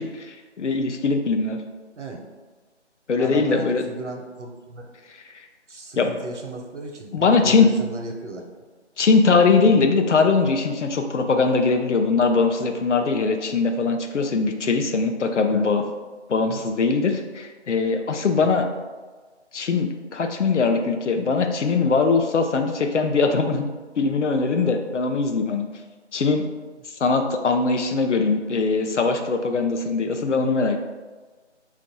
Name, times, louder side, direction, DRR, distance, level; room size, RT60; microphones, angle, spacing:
voice 1, 0.0-1.6 3.1-3.8 5.3-5.4 6.0-6.1 7.1-7.7 9.0-15.8 16.3-18.7 19.5-23.7 24.0-25.6 26.1-26.5 27.0-30.8, left 4 dB, 80° left, 5 dB, 0.6 m, -21 dB
voice 2, 3.2-4.9 5.7-8.4 15.5-15.8 16.5-16.6 18.4-18.6, right 2 dB, 80° right, 2 dB, 0.8 m, -36 dB
3.0 x 2.5 x 3.9 m, 1.3 s
figure-of-eight pair, 170°, 35 cm